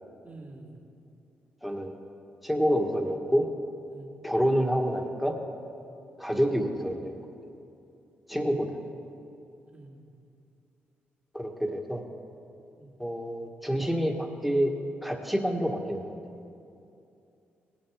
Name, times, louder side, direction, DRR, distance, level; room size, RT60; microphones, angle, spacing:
voice 1, 0.2-0.8 3.9-4.2 8.3-8.8 9.7-10.1 12.8-12.9, right 2 dB, 40° right, -2 dB, 3.2 m, -47 dB
voice 2, 1.6-1.9 2.4-3.5 4.2-5.4 6.2-7.2 8.3-8.7 11.3-12.0 13.0-14.7 15.0-16.2, equal, ahead, 3 dB, 1.7 m, -27 dB
18.0 x 8.4 x 5.0 m, 2.6 s
supercardioid pair, 55°, 5 cm